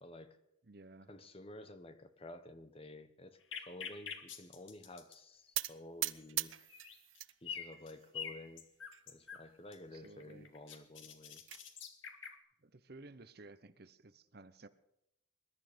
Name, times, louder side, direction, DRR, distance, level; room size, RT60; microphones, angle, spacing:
voice 1, 0.0-0.4 1.1-6.7 7.4-8.7 9.1-11.4, left 1 dB, 30° left, 10 dB, 1.3 m, -52 dB
voice 2, 0.7-1.1 9.9-10.5 12.6-14.7, right 2 dB, 55° right, 14 dB, 0.9 m, -55 dB
sound 1, 3.5-5.2 6.1-6.2 6.7-7.2 7.5-9.4 9.7-12.4, left 7 dB, 85° left, 2.1 m, -46 dB
sound 2, 5.5-7.3 7.7-8.3 8.9-9.0 9.3-9.4 9.8-9.9 11.0-11.6, right 16 dB, 85° right, 0.8 m, -40 dB
22.0 x 11.5 x 5.2 m, 0.82 s
head